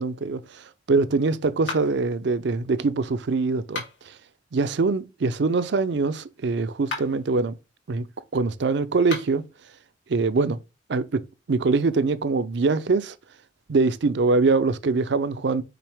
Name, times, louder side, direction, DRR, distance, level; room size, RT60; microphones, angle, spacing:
voice 1, 0.0-4.1 4.5-7.5 7.9-8.1 8.3-9.5 10.1-10.6 10.9-13.1 13.7-15.6, right 3 dB, 65° right, 0.5 m, -23 dB
sound 1, 1.6-2.1 3.6-4.2 6.8-7.3 9.0-9.5, left 3 dB, 90° left, 2.4 m, -35 dB
5.9 x 4.6 x 3.4 m
head